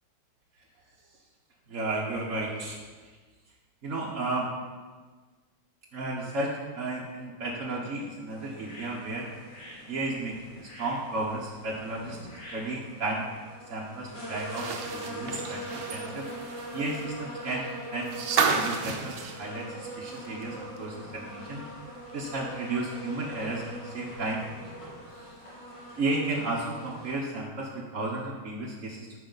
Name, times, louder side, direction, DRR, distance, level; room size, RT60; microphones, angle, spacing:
voice 1, 1.7-2.8 3.8-4.5 5.9-9.3 9.9-12.2 12.5-13.2 13.7-16.3 16.7-18.2 18.4-21.6 22.1-24.4 25.1-25.3 26.0-29.2, right 2 dB, 45° right, -4 dB, 1.2 m, -33 dB
sound 1, 8.3-27.1, right 1 dB, 65° left, 4.4 m, -42 dB
sound 2, 14.4-20.4 20.8-20.9 22.2-22.3, right 5 dB, 75° right, 1.6 m, -32 dB
14.0 x 5.7 x 4.0 m, 1.4 s
omnidirectional pair, 2.3 m